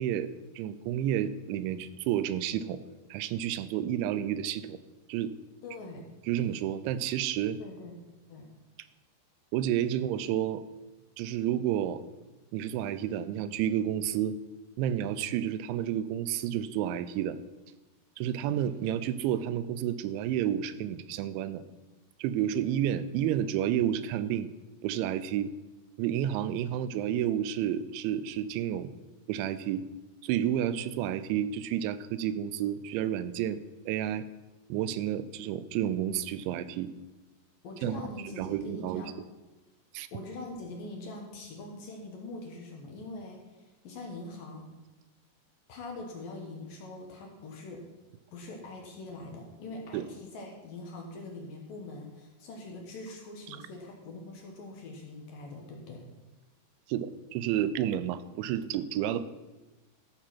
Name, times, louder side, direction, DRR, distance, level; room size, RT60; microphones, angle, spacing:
voice 1, 0.0-2.8 3.1-4.8 5.1-5.3 6.3-7.6 9.5-10.6 11.2-12.0 12.5-14.4 14.8-17.4 18.2-21.6 22.2-24.5 24.8-25.5 26.0-28.9 29.3-29.8 30.2-33.6 33.9-34.3 34.7-36.9 37.8-39.1 39.9-40.1 49.9-50.1 56.9-59.3, right 10 dB, 90° right, 14 dB, 3.0 m, -30 dB
voice 2, 5.6-6.0 7.6-7.9 8.3-8.5 37.6-39.2 40.1-44.7 45.7-47.8 48.3-56.0, left 2 dB, 65° left, 1 dB, 2.6 m, -43 dB
14.0 x 6.5 x 5.8 m, 1.1 s
omnidirectional pair, 5.2 m